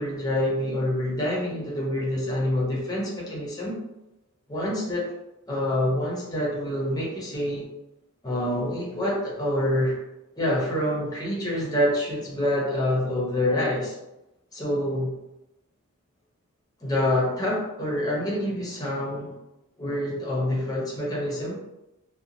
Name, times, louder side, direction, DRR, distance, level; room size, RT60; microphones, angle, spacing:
voice 1, 0.0-3.8 4.5-5.1 5.5-7.7 8.2-10.0 10.4-13.9 14.5-15.2 16.8-19.3 19.8-21.5, left 1 dB, 15° left, -4 dB, 0.7 m, -26 dB
2.8 x 2.2 x 2.6 m, 0.94 s
head